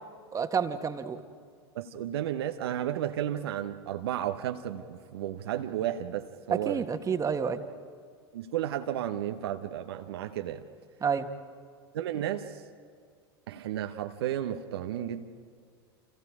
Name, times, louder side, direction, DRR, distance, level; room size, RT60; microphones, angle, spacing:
voice 1, 0.3-1.2 6.5-7.6 11.0-11.3, right 6 dB, 25° right, 7 dB, 1.8 m, -29 dB
voice 2, 1.7-6.9 8.3-10.6 11.9-12.6 13.5-15.2, right 11 dB, 70° right, 6 dB, 1.2 m, -33 dB
30.0 x 28.0 x 5.0 m, 2.1 s
hypercardioid pair, 80°, 13 cm